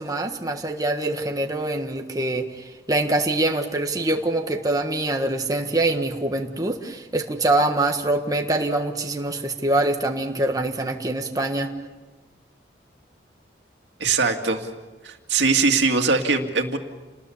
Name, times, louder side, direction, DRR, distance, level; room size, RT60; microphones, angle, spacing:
voice 1, 0.0-11.7, right 2 dB, 20° right, 3 dB, 1.5 m, -24 dB
voice 2, 14.0-14.7 15.0-16.8, right 4 dB, 90° right, 5 dB, 2.3 m, -21 dB
29.0 x 20.0 x 7.2 m, 1.2 s
head